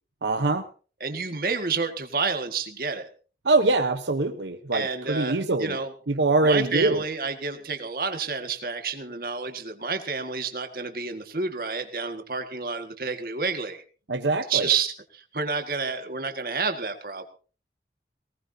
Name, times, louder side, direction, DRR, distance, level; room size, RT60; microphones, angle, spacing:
voice 1, 0.2-0.7 3.4-5.8 6.1-7.0 14.1-14.7, right 2 dB, 90° right, 7 dB, 1.0 m, -23 dB
voice 2, 1.0-3.1 4.7-5.9 6.4-13.8 14.5-17.2, right 5 dB, 55° right, 6 dB, 1.8 m, -29 dB
19.0 x 19.0 x 2.8 m, 0.37 s
head